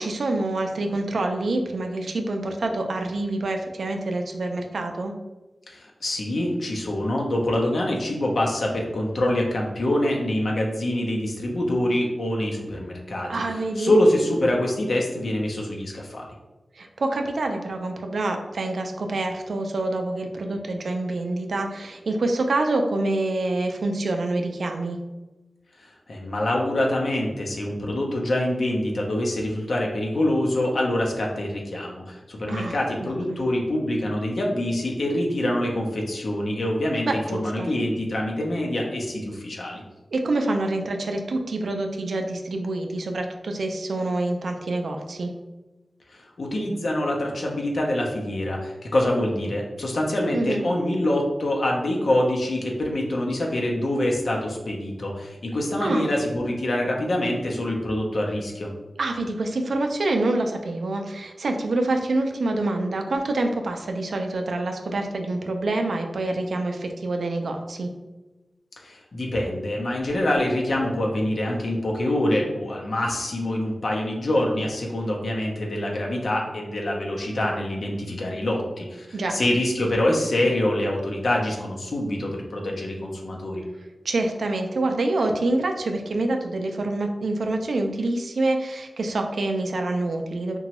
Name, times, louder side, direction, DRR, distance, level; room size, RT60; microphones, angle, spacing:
voice 1, 0.0-5.1 13.3-13.9 16.7-25.0 32.5-33.4 37.1-37.7 40.1-45.3 50.3-50.7 55.8-56.1 59.0-67.9 79.1-79.4 84.0-90.6, right 2 dB, 85° right, 4 dB, 0.3 m, -26 dB
voice 2, 5.7-16.2 25.8-39.8 46.1-58.7 68.8-83.6, left 1 dB, 70° left, -1 dB, 0.6 m, -25 dB
2.9 x 2.2 x 2.9 m, 1.1 s
wide cardioid pair, 75°, 0 cm